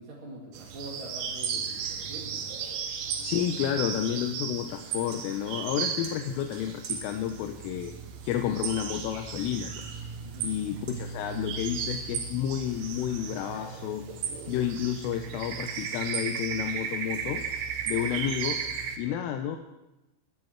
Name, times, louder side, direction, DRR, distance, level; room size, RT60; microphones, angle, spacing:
voice 1, 0.0-2.6 10.2-10.6 19.0-19.2, right 2 dB, 40° right, -4 dB, 2.2 m, -44 dB
sound 1, 0.5-19.0, right 7 dB, 75° right, 3.8 m, -35 dB
voice 2, 3.2-7.9 8.2-9.8 10.4-14.0 14.5-17.4 17.9-18.6 19.0-19.6, left 10 dB, 85° left, 5 dB, 3.4 m, -31 dB
sound 2, 5.1-5.8 6.0-7.5 7.8-8.4 8.6-11.6 11.9-12.3 12.7-15.1 15.4-17.3, right 5 dB, 55° right, 3.9 m, -52 dB
21.0 x 12.5 x 4.6 m, 0.98 s
omnidirectional pair, 5.7 m